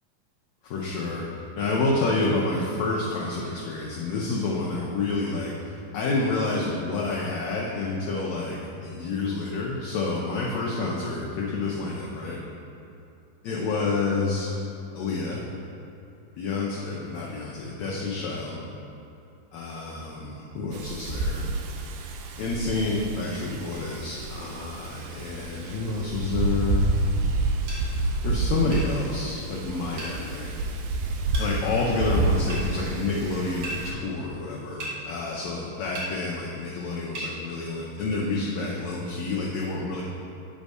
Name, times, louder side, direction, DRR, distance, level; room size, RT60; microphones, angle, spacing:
voice 1, 0.6-1.3 1.5-12.4 13.4-14.6 14.9-15.5 16.4-18.6 19.5-21.5 22.4-26.9 28.2-30.6 31.4-40.0, left 3 dB, 80° left, -4 dB, 1.6 m, -29 dB
Wind, 20.7-33.9, right 2 dB, 85° right, 2.2 m, -29 dB
sound 1, 27.7-27.8 28.7-28.9 30.0-30.2 31.3-31.5 32.5-32.6 33.6-33.8 34.8-35.0 35.9-36.1 37.1-37.3, right 2 dB, 55° right, 2.4 m, -34 dB
9.5 x 3.5 x 5.3 m, 2.8 s
omnidirectional pair, 3.9 m